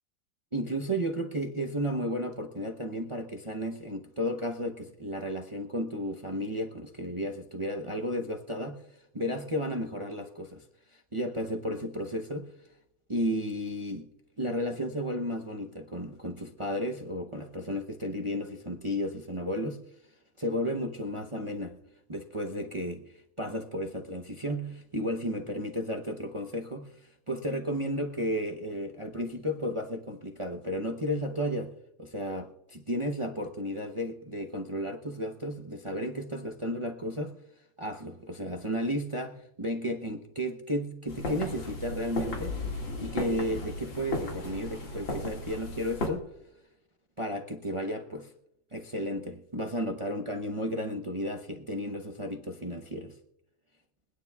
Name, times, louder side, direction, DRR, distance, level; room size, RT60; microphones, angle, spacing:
voice 1, 0.5-8.8 9.1-10.6 10.9-12.5 13.1-14.0 14.4-19.8 20.4-21.8 22.1-26.9 27.3-31.7 32.0-37.4 37.8-42.6 43.0-46.3 47.2-48.3 48.7-53.2, equal, 45° right, 0.3 m, -33 dB
sound 1, 41.1-46.1, left 2 dB, 75° left, 2.9 m, -35 dB
24.0 x 9.7 x 2.4 m
omnidirectional pair, 2.1 m